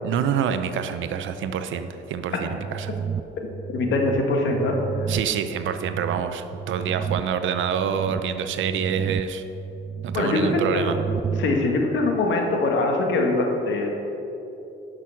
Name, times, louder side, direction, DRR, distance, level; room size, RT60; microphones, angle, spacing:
voice 1, 0.0-2.9 5.1-9.4 10.0-11.0, right 7 dB, 75° right, 9 dB, 0.7 m, -27 dB
sound 1, 2.5-11.6, right 7 dB, 20° right, 0.4 m, -32 dB
voice 2, 3.7-4.8 10.1-11.0 11.4-13.9, left 2 dB, 70° left, 2 dB, 1.7 m, -22 dB
11.0 x 6.3 x 5.7 m, 3.0 s
cardioid pair, 90°, 20 cm